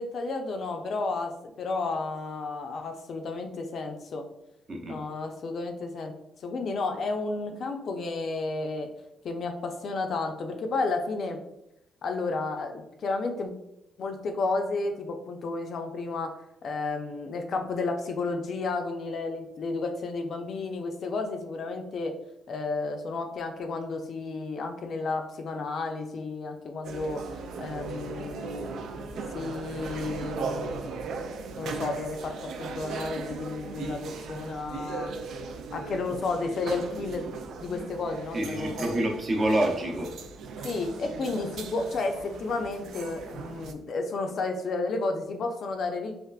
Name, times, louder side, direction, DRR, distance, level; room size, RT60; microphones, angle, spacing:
voice 1, 0.0-1.3 1.6-4.2 4.9-6.1 6.4-8.9 9.2-11.4 12.0-13.5 14.0-16.3 16.6-22.1 22.5-27.2 27.6-29.0 29.3-31.2 31.6-35.1 35.7-37.3 37.6-38.7 40.6-46.2, left 3 dB, 60° left, 5 dB, 0.4 m, -32 dB
voice 2, 4.7-5.0 38.3-40.1, right 1 dB, 40° right, 1 dB, 0.7 m, -27 dB
sound 1, 26.8-43.7, right 4 dB, 75° right, 0.3 m, -38 dB
3.4 x 2.4 x 2.3 m, 0.84 s
cardioid pair, 90°, 0 cm